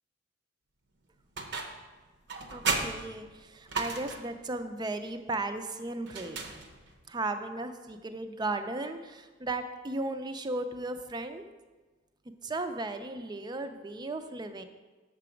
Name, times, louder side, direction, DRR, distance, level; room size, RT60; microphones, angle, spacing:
sound 1, 1.4-1.9 2.3-4.4 6.1-7.0, right 4 dB, 60° right, 0.7 m, -34 dB
voice 1, 2.5-6.4 7.1-11.4 12.4-14.6, right 2 dB, 20° right, 8 dB, 0.4 m, -35 dB
6.7 x 5.7 x 5.0 m, 1.3 s
head